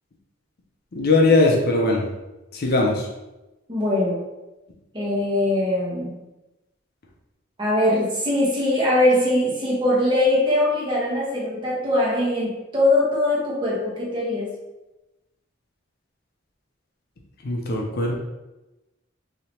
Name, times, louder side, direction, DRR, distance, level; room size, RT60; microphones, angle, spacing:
voice 1, 0.9-2.0 2.5-3.1 17.4-18.2, left 2 dB, 55° left, 0 dB, 0.5 m, -19 dB
voice 2, 3.7-4.2 4.9-6.2 7.6-14.5, left 1 dB, 25° right, -6 dB, 1.1 m, -21 dB
3.2 x 2.8 x 2.8 m, 1.0 s
head